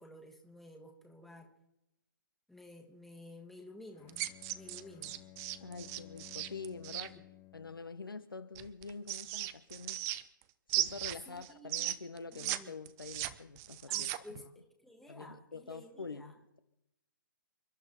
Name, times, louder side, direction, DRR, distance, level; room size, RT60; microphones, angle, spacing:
voice 1, 0.0-1.5 2.5-5.2 11.3-11.9 12.3-12.7 13.9-16.4, left 1 dB, ahead, 2 dB, 1.6 m, -53 dB
Bowed string instrument, 3.9-8.0, left 17 dB, 20° left, 0.7 m, -56 dB
sound 1, 4.1-7.1 8.6-10.4 10.7-12.6 12.9-14.4, right 15 dB, 25° right, 0.7 m, -36 dB
voice 2, 5.6-7.2 7.5-10.1 10.8-14.4 15.1-16.6, left 4 dB, 85° left, 9 dB, 1.3 m, -46 dB
29.0 x 11.0 x 4.5 m, 0.89 s
figure-of-eight pair, 135°, 11 cm